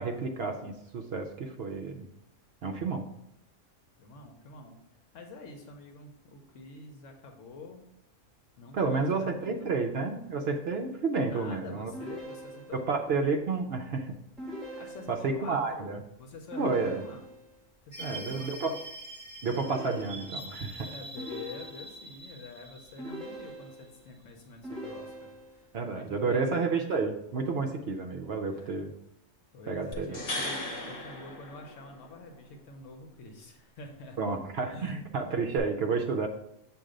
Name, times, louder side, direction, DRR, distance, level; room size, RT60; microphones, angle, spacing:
voice 1, 0.0-2.1 2.6-3.0 8.7-11.9 12.7-14.1 15.1-16.0 16.6-17.0 18.0-18.8 19.4-20.9 25.7-28.9 29.7-30.2 34.2-36.3, right 4 dB, 60° right, 3 dB, 0.7 m, -30 dB
voice 2, 4.0-4.8 5.1-7.8 8.6-9.7 11.2-12.9 14.8-17.2 17.9-18.6 20.7-26.6 28.5-28.8 29.5-34.4 34.7-35.5, left 3 dB, 75° left, 3 dB, 1.1 m, -47 dB
sound 1, 11.9-13.0 14.4-15.4 16.5-17.6 19.6-20.6 21.2-22.1 23.0-24.0 24.6-25.7, equal, ahead, 2.0 m, -42 dB
sound 2, 17.9-24.2, right 2 dB, 20° right, 1.4 m, -45 dB
sound 3, 29.9-32.2 35.6-35.7, left 1 dB, 50° left, 1.2 m, -37 dB
7.4 x 2.6 x 4.9 m, 0.79 s
omnidirectional pair, 1.3 m